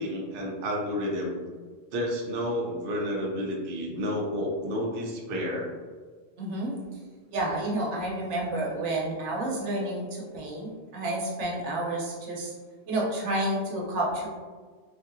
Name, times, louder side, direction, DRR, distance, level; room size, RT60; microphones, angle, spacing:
voice 1, 0.0-1.4 1.9-5.7, equal, 60° right, -2 dB, 0.7 m, -30 dB
voice 2, 6.4-6.7 7.3-12.5 12.9-14.3, right 1 dB, 85° right, -3 dB, 1.1 m, -30 dB
3.3 x 2.7 x 2.5 m, 1.5 s
omnidirectional pair, 1.2 m